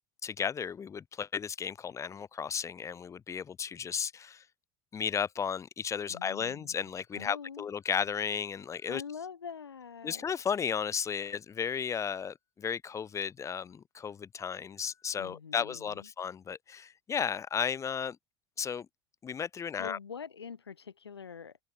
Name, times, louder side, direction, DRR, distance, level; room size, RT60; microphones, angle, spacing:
voice 1, 0.2-4.4 4.9-9.0 10.0-18.2 18.6-18.9 19.2-20.0, left 7 dB, 25° left, 0.7 m, -34 dB
voice 2, 6.1-7.7 8.9-10.2 15.2-16.1 19.8-21.6, left 6 dB, 85° left, 6.7 m, -44 dB
hypercardioid pair, 80°, 13 cm